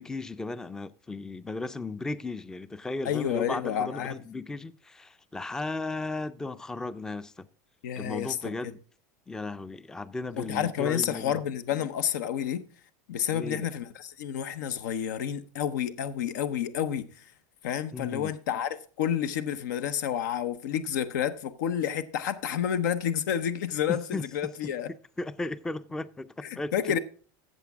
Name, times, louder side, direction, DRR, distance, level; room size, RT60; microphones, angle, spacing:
voice 1, 0.0-7.5 8.0-8.8 9.3-11.4 13.3-13.7 17.9-18.3 23.9-24.3 24.6-24.7 25.2-26.7, left 3 dB, 5° left, 0.4 m, -35 dB
voice 2, 3.0-4.1 7.8-8.5 10.4-12.6 13.1-17.1 17.6-24.9 26.7-27.0, left 9 dB, 85° left, 0.8 m, -30 dB
14.5 x 7.4 x 3.5 m
supercardioid pair, 150°, 9 cm